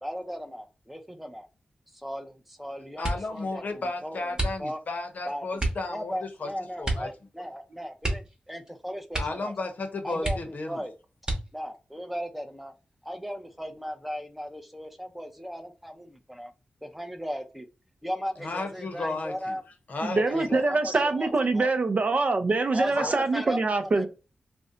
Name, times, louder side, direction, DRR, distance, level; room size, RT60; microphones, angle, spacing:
voice 1, 0.0-1.5 1.9-4.3 4.6-4.8 5.3-5.4 5.9-9.5 10.0-10.9 11.5-12.7 13.0-16.5 16.8-17.7 18.0-19.6 20.2-21.7 22.7-24.1, equal, 5° right, 0.6 m, -37 dB
voice 2, 3.0-6.5 6.8-7.1 9.2-10.8 18.4-19.6 19.9-20.7 22.9-23.1, left 3 dB, 65° left, 0.7 m, -33 dB
sound 1, 3.0-3.4 4.3-5.0 5.6-5.9 6.8-7.2 7.4-7.5 8.0-8.7 9.1-9.5 9.8-9.9 10.2-10.7 11.2-11.8 12.5-13.1 13.5-13.9, right 1 dB, 25° right, 1.0 m, -31 dB
voice 3, 20.0-24.1, right 3 dB, 50° right, 0.5 m, -24 dB
2.5 x 2.1 x 3.7 m
wide cardioid pair, 75°, 3 cm